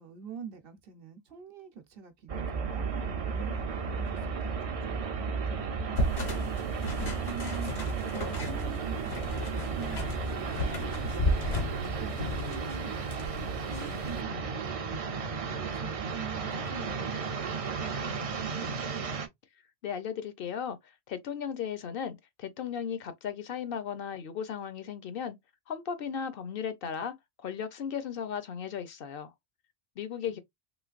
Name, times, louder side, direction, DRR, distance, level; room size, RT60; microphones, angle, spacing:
voice 1, 0.0-5.0 5.5-8.0 8.3-11.6 11.8-17.1 17.5-18.7 30.3-30.4, right 5 dB, 65° right, 0.9 m, -46 dB
sound 1, 2.3-19.3, right 5 dB, 45° right, 0.5 m, -34 dB
sound 2, 6.0-14.2, left 1 dB, 90° left, 1.5 m, -34 dB
voice 2, 19.8-25.4 25.7-29.3 30.0-30.4, left 7 dB, 70° left, 0.7 m, -36 dB
3.1 x 3.0 x 2.4 m
omnidirectional pair, 1.0 m